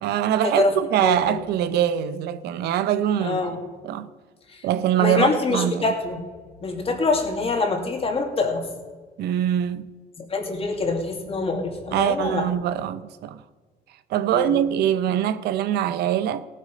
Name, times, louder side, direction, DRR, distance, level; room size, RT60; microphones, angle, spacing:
voice 1, 0.0-3.4 3.8-4.1 4.6-5.9 9.2-9.9 11.9-13.4 14.1-16.5, right 10 dB, 75° right, 0.7 m, -23 dB
voice 2, 1.0-1.4 3.2-3.6 4.5-4.6 5.0-6.2 6.6-8.6 10.3-12.5 14.3-14.5, left 3 dB, 35° left, 2.4 m, -25 dB
17.0 x 7.9 x 5.2 m
cardioid pair, 110°, 17 cm